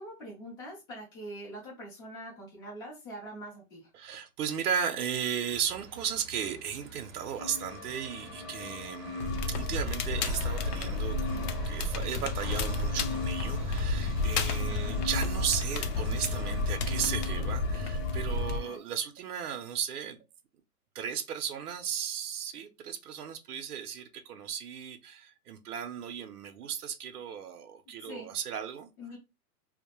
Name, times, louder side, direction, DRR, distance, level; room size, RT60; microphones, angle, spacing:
voice 1, 0.0-3.9 14.7-15.1 28.1-28.3 29.0-29.2, equal, 15° left, 0.5 m, -44 dB
voice 2, 3.9-20.2 20.9-28.9, right 8 dB, 70° right, 0.6 m, -35 dB
sound 1, 5.4-17.1, right 5 dB, 30° right, 0.6 m, -50 dB
sound 2, 7.4-18.8, left 4 dB, 40° left, 0.9 m, -41 dB
Crackle, 9.2-18.6, left 2 dB, 75° left, 0.6 m, -31 dB
2.2 x 2.1 x 2.9 m
hypercardioid pair, 160°, 47 cm